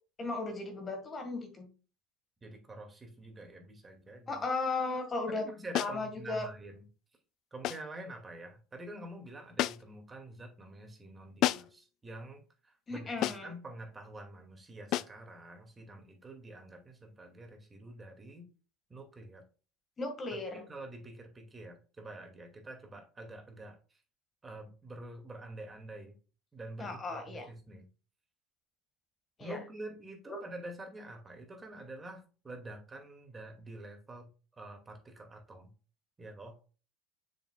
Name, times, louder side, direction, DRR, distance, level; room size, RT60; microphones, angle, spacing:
voice 1, 0.2-1.7 4.3-5.5 5.8-6.5 12.9-13.5 20.0-20.6 26.8-27.5 29.4-29.6 30.3-30.4, left 3 dB, 30° left, 5 dB, 1.9 m, -36 dB
voice 2, 2.4-4.4 5.3-6.9 7.5-18.5 18.9-19.4 20.3-24.0 24.4-26.2 26.5-27.9 29.4-35.7 36.2-36.6, right 2 dB, 20° right, 3 dB, 2.3 m, -47 dB
sound 1, 5.7-6.0 7.6-7.9 9.6-10.0 11.4-11.8 13.2-13.6 14.9-15.2, left 14 dB, 55° left, 0.3 m, -32 dB
6.9 x 6.1 x 2.4 m, 0.35 s
hypercardioid pair, 75°, 0 cm